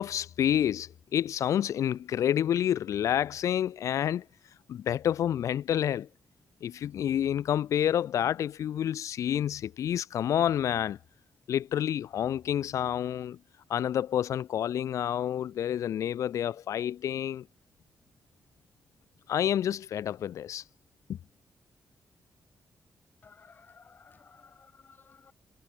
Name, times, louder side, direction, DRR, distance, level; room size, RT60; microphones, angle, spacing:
voice 1, 0.0-4.2 4.7-6.1 6.6-11.0 11.5-13.4 13.7-17.4 19.3-20.6 21.1-21.2, left 10 dB, 90° left, 1.2 m, -29 dB
voice 2, 23.2-25.3, left 5 dB, 35° left, 6.8 m, -56 dB
wide cardioid pair, 155°, 5 cm